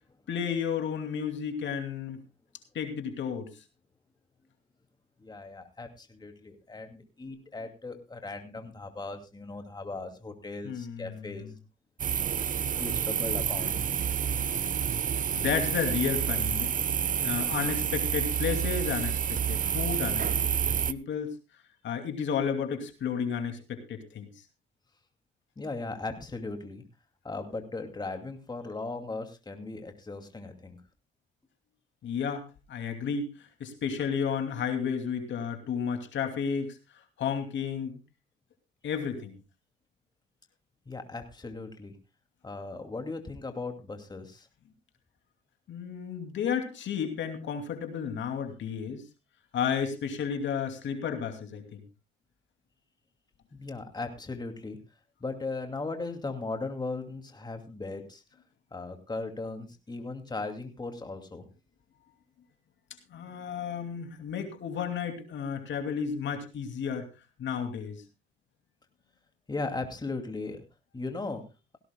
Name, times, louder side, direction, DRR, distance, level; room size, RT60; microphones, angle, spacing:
voice 1, 0.3-2.2 2.7-3.5 10.6-11.5 14.3-14.4 15.3-16.7 17.2-20.3 20.6-21.3 21.8-24.3 32.0-32.4 32.7-36.8 37.2-38.0 38.8-39.4 45.7-49.0 49.5-51.8 63.1-67.1 67.4-68.0, left 7 dB, 70° left, 6 dB, 2.7 m, -32 dB
voice 2, 5.2-11.5 12.8-13.8 25.6-26.8 27.2-30.8 40.9-41.9 42.4-44.5 53.5-54.8 55.2-58.2 58.7-61.5 69.5-70.6 70.9-71.4, left 3 dB, 20° left, 5 dB, 2.5 m, -37 dB
sound 1, 12.0-20.9, right 8 dB, 45° right, 0.7 m, -29 dB
18.0 x 16.5 x 2.3 m, 0.27 s
cardioid pair, 90°, 20 cm